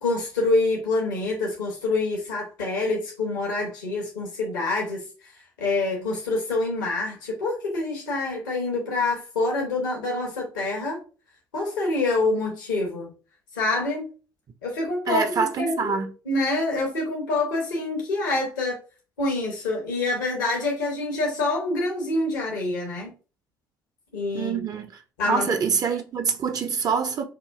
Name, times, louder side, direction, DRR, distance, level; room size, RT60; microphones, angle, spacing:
voice 1, 0.0-5.3 5.6-11.0 11.5-13.1 13.6-14.1 14.6-18.8 19.2-23.1 24.1-24.7 25.2-25.6, left 2 dB, 75° left, 0.9 m, -26 dB
voice 2, 15.1-16.1 24.3-24.9 25.3-27.2, right 6 dB, 35° right, 0.4 m, -25 dB
4.8 x 2.4 x 2.3 m
figure-of-eight pair, 50°, 10 cm